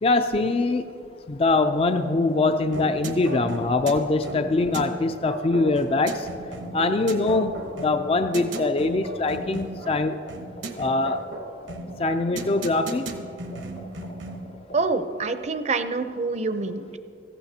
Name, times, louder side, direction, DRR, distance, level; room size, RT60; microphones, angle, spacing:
voice 1, 0.0-0.9 1.3-6.3 6.7-10.2 10.8-11.2 12.0-13.1, left 3 dB, 30° left, 8 dB, 0.4 m, -23 dB
sound 1, 1.4-14.8, equal, 75° left, 3.4 m, -42 dB
sound 2, 2.7-14.5, right 2 dB, 80° right, 1.0 m, -36 dB
voice 2, 14.7-17.0, right 3 dB, 40° right, 10 dB, 0.6 m, -26 dB
17.5 x 14.5 x 2.8 m, 2.5 s
head